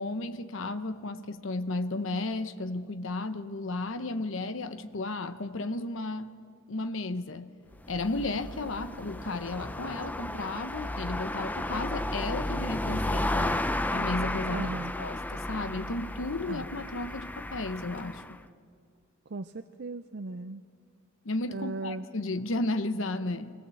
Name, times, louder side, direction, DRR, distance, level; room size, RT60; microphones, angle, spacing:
voice 1, 0.0-6.3 6.7-7.5 7.9-14.7 15.0-18.4 21.2-23.5, left 2 dB, 65° left, 0.9 m, -33 dB
sound 1, 7.7-18.4, left 1 dB, 10° left, 0.5 m, -33 dB
voice 2, 14.5-14.9 16.5-16.7 19.3-20.6 21.5-22.1, right 3 dB, 55° right, 0.6 m, -37 dB
25.0 x 19.0 x 7.8 m
head